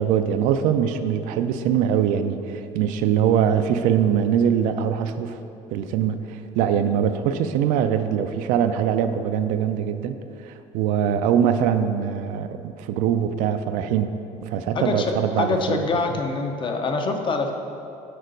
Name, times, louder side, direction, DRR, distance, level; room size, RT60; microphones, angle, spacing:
voice 1, 0.0-5.4 5.7-10.2 10.4-14.1 14.4-15.8, right 8 dB, 80° right, 9 dB, 0.4 m, -22 dB
voice 2, 14.7-17.5, left 3 dB, 35° left, 4 dB, 0.7 m, -25 dB
6.6 x 3.9 x 5.1 m, 2.7 s
cardioid pair, 110°, 14 cm